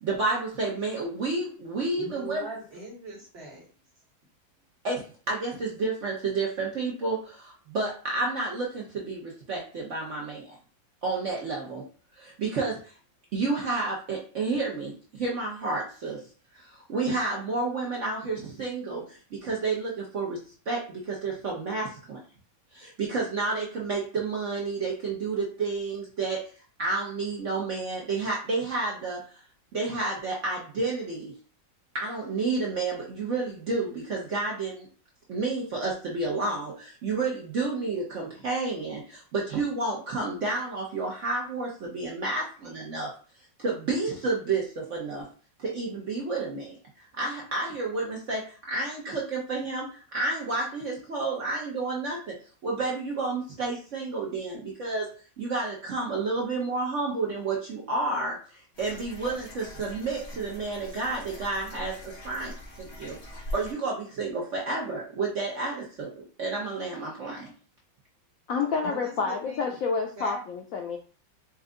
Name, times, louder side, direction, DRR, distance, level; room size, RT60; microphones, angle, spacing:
voice 1, 0.0-2.4 4.8-10.5 11.0-11.8 12.2-12.9 13.3-16.2 16.5-20.4 20.7-22.2 22.7-26.5 26.8-29.4 29.7-31.3 31.9-34.9 35.3-43.1 43.6-45.3 45.6-46.8 47.2-55.1 55.4-67.5, right 3 dB, 55° right, -2 dB, 0.9 m, -30 dB
voice 2, 2.0-3.7 68.5-69.8 70.2-70.4, right 2 dB, 35° right, -3 dB, 1.4 m, -41 dB
sound 1, 58.7-63.7, left 1 dB, 40° left, 1.2 m, -42 dB
voice 3, 68.5-71.0, left 5 dB, 90° left, 2 dB, 0.7 m, -29 dB
4.4 x 2.4 x 3.7 m, 0.38 s
omnidirectional pair, 2.0 m